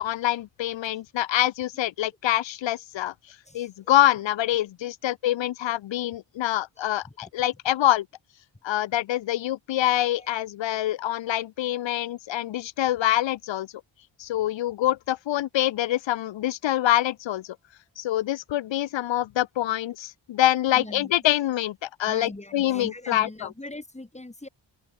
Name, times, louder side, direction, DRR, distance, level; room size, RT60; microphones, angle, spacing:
voice 1, 0.0-3.1 3.5-8.1 8.6-13.7 14.2-17.6 18.0-23.5, left 13 dB, 75° left, 0.6 m, -25 dB
voice 2, 3.5-3.9 5.1-5.2 6.8-7.3 7.7-7.8 10.2-10.3 20.7-21.1 22.1-24.5, left 2 dB, 15° left, 3.6 m, -41 dB
open air
wide cardioid pair, 125°, 45 cm